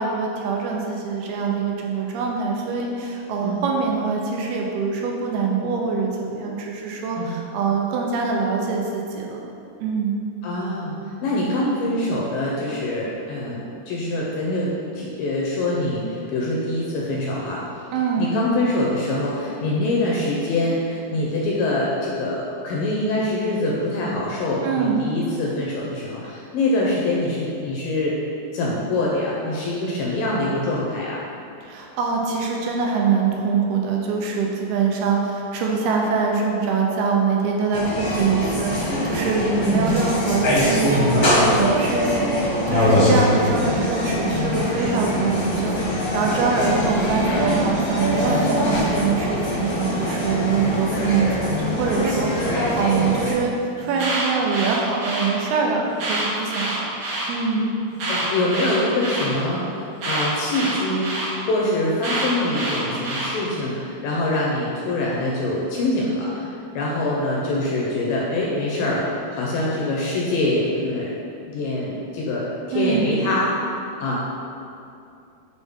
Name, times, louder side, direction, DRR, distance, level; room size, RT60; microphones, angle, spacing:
voice 1, 0.0-9.4 9.8-10.1 17.9-18.4 24.6-25.0 31.6-56.9 57.3-57.7 72.7-73.2, right 5 dB, 85° right, -1 dB, 2.6 m, -24 dB
voice 2, 10.4-11.0 11.2-17.9 18.2-28.2 28.5-31.2 39.4-40.0 58.1-61.1 61.5-71.1 71.4-73.5 74.0-74.2, left 1 dB, 80° left, -4 dB, 2.1 m, -24 dB
sound 1, 37.7-53.3, equal, 60° left, 1.3 m, -22 dB
Alarm, 53.8-55.3 55.9-57.3 57.9-59.3 60.0-61.3 62.0-63.3, right 2 dB, 60° right, 2.3 m, -27 dB
6.9 x 4.1 x 3.6 m, 2.6 s
omnidirectional pair, 4.6 m